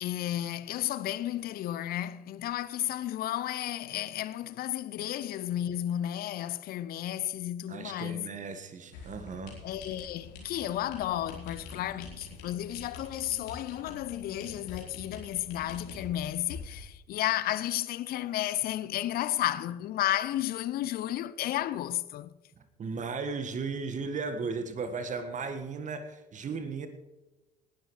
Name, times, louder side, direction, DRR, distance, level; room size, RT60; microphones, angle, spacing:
voice 1, 0.0-8.3 9.6-22.3, left 13 dB, 45° left, 0.6 m, -33 dB
voice 2, 7.7-9.6 11.8-11.9 22.6-26.9, right 4 dB, 35° right, 1.7 m, -36 dB
sound 1, 8.9-16.8, left 3 dB, 70° left, 4.2 m, -46 dB
19.0 x 12.0 x 3.3 m
figure-of-eight pair, 55°, 21 cm